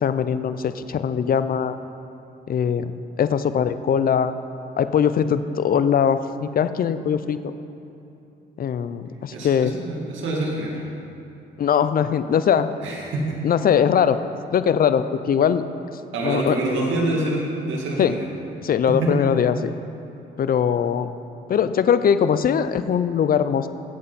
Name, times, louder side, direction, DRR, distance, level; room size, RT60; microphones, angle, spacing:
voice 1, 0.0-1.8 2.5-4.3 4.8-7.5 8.6-9.7 11.6-12.7 13.4-14.2 14.5-16.6 18.0-18.2 18.6-19.7 20.4-21.1 21.5-23.7, left 8 dB, 45° left, 12 dB, 0.6 m, -21 dB
voice 2, 9.3-10.8 12.8-13.4 16.1-18.2 18.9-19.1, right 2 dB, 75° right, -2 dB, 2.4 m, -26 dB
16.0 x 7.7 x 4.2 m, 2.9 s
cardioid pair, 90°, 20 cm